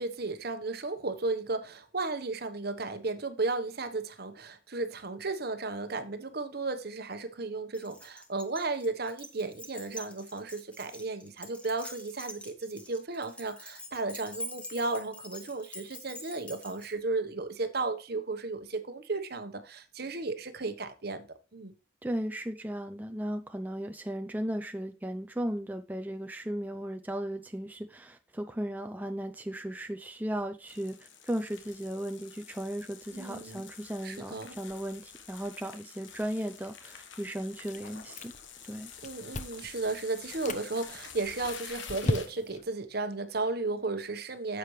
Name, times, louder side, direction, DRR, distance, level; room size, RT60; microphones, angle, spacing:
voice 1, 0.0-21.3 21.5-21.7 33.1-33.6 34.0-34.5 39.0-44.6, right 3 dB, 50° right, 1.1 m, -34 dB
Keys jangling, 7.7-16.9, equal, 5° left, 1.3 m, -46 dB
voice 2, 22.0-38.3 38.6-38.9, right 1 dB, 10° right, 0.5 m, -36 dB
sound 1, 30.7-42.5, left 7 dB, 70° left, 1.4 m, -48 dB
Chewing mastication, 37.6-38.6 38.9-39.7 40.2-40.6 41.2-42.7, left 1 dB, 40° left, 0.9 m, -35 dB
10.0 x 7.6 x 3.2 m
head